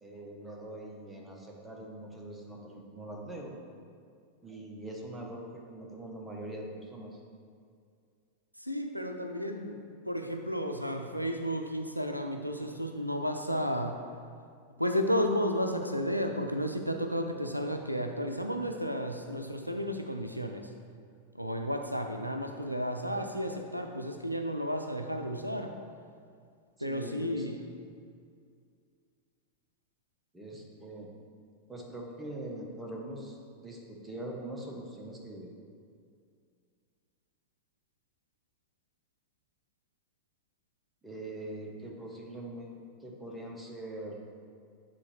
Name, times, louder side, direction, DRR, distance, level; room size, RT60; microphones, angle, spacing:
voice 1, 0.0-3.5 4.4-7.2 26.8-27.5 30.3-31.1 31.7-35.6 41.0-44.2, right 1 dB, 10° right, -1 dB, 0.9 m, -43 dB
voice 2, 8.6-14.0 14.8-20.7 21.3-25.7 26.8-27.6, equal, 90° right, 5 dB, 0.4 m, -32 dB
8.3 x 3.7 x 3.1 m, 2.2 s
figure-of-eight pair, 90°, 0 cm